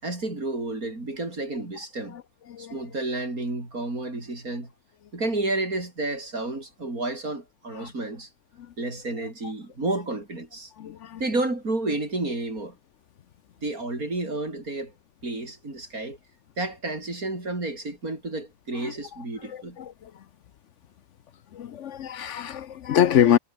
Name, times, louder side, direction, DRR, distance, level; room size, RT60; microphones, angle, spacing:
voice 1, 0.0-2.2 2.6-4.7 5.1-8.3 8.8-10.7 11.2-12.8 13.6-14.9 15.2-16.2 16.6-19.8, right 2 dB, 85° right, 6.3 m, -31 dB
voice 2, 10.8-11.2 18.8-18.9 19.5-20.1 21.5-23.4, left 10 dB, 60° left, 1.0 m, -25 dB
omnidirectional pair, 1.5 m